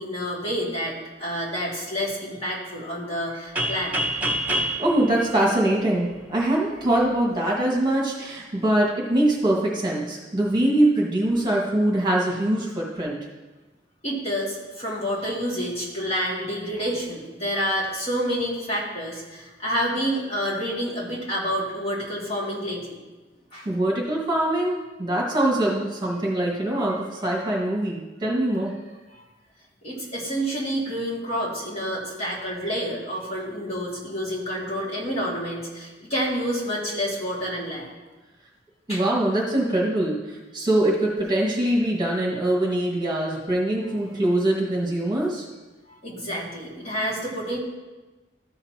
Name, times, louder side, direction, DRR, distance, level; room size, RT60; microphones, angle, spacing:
voice 1, 0.0-4.0 14.0-23.0 23.5-23.7 29.1-29.2 29.8-37.9 38.9-39.0 45.9-47.6, equal, 35° left, -6 dB, 2.4 m, -28 dB
sound 1, 3.6-6.3, right 1 dB, 10° right, 1.3 m, -27 dB
voice 2, 4.5-13.2 23.7-28.7 38.9-45.4, right 1 dB, 25° right, -3 dB, 1.8 m, -23 dB
14.0 x 6.8 x 2.9 m, 1.2 s
head